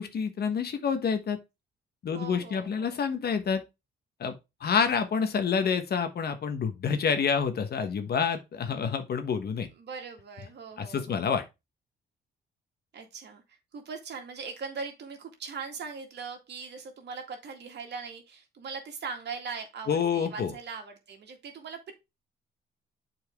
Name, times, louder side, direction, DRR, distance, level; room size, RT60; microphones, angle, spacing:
voice 1, 0.0-1.4 2.0-3.6 4.2-4.3 4.6-9.7 10.8-11.4 19.9-20.5, left 6 dB, 55° left, 1.3 m, -28 dB
voice 2, 2.1-3.0 9.8-11.3 12.9-21.9, right 5 dB, 60° right, 2.1 m, -40 dB
8.0 x 4.6 x 3.5 m
cardioid pair, 90°, 20 cm